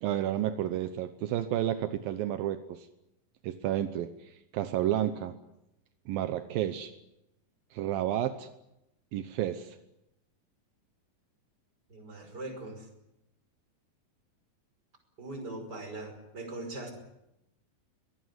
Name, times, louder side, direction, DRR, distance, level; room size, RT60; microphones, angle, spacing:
voice 1, 0.0-2.9 3.4-5.3 6.1-6.9 7.7-8.5 9.1-9.8, right 12 dB, 80° right, 9 dB, 2.7 m, -31 dB
voice 2, 11.9-12.9 15.2-16.9, right 2 dB, 25° right, 5 dB, 5.7 m, -40 dB
23.0 x 19.5 x 9.5 m, 0.88 s
omnidirectional pair, 4.2 m